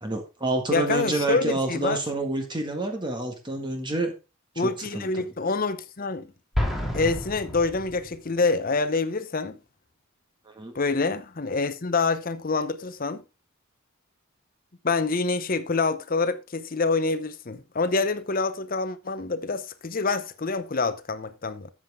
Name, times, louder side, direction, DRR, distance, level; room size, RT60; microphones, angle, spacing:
voice 1, 0.0-4.1 4.6-5.3 10.5-10.7, right 2 dB, 20° right, 1.7 m, -28 dB
voice 2, 0.7-2.0 4.6-6.3 6.9-9.6 10.7-13.2 14.8-21.7, left 3 dB, 40° left, 0.7 m, -26 dB
Explosion, 6.5-8.4, left 1 dB, ahead, 2.7 m, -29 dB
13.0 x 7.5 x 3.6 m
head